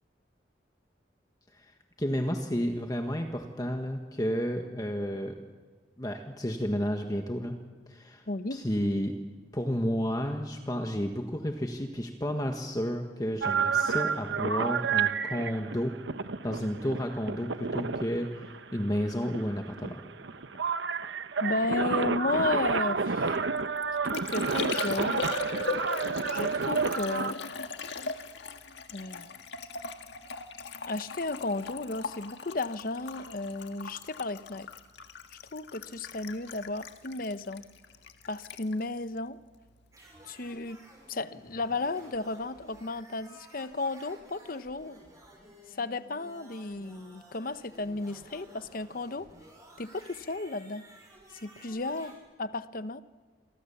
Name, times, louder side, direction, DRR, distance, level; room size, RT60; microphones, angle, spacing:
voice 1, 2.0-5.3 6.0-7.6 7.9-8.2 8.5-9.1 9.5-16.0 16.4-20.0, equal, 20° left, 4 dB, 1.5 m, -31 dB
voice 2, 8.3-8.6 21.4-23.4 24.0-25.2 26.3-27.5 28.9-29.4 30.9-34.7 35.3-37.6 38.3-39.4 40.2-40.8 41.1-45.0 45.7-49.3 49.8-50.8 51.4-53.0, left 2 dB, 50° left, 12 dB, 0.8 m, -34 dB
sound 1, 13.4-27.3, right 5 dB, 75° right, 1.0 m, -30 dB
Liquid, 23.3-40.0 40.2-40.8, left 5 dB, 70° left, 1.7 m, -40 dB
sound 2, 39.9-52.2, right 1 dB, 20° right, 6.3 m, -54 dB
28.5 x 23.5 x 7.2 m, 1.5 s
head